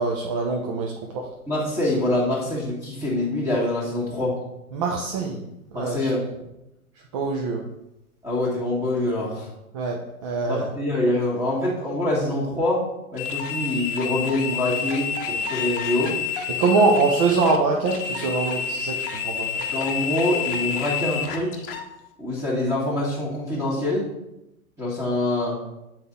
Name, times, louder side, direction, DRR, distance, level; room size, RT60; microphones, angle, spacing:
voice 1, 0.0-1.3 4.7-5.4 5.7-6.1 7.1-7.6 9.7-10.7 16.5-19.5, right 4 dB, 25° right, 0 dB, 0.4 m, -23 dB
voice 2, 1.5-4.3 5.7-6.2 8.2-9.5 10.5-12.8 13.1-16.1 19.5-21.6 22.2-24.1 24.8-25.6, left 1 dB, 5° right, -6 dB, 1.5 m, -25 dB
sound 1, 13.2-21.9, left 7 dB, 40° left, 0.9 m, -29 dB
7.7 x 4.3 x 3.7 m, 0.90 s
figure-of-eight pair, 105°, 45 cm